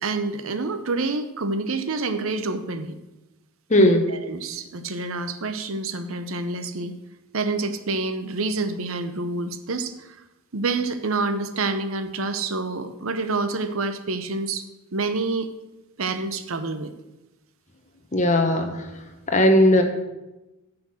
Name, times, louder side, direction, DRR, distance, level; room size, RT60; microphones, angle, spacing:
voice 1, 0.0-3.0 3.8-6.9 7.3-10.2 10.5-14.7 14.9-15.5 16.0-16.9, right 3 dB, 75° right, 10 dB, 0.8 m, -27 dB
voice 2, 3.7-4.1 18.1-18.8 19.3-19.8, left 1 dB, 35° left, 5 dB, 1.2 m, -17 dB
10.0 x 6.1 x 6.4 m, 1.0 s
head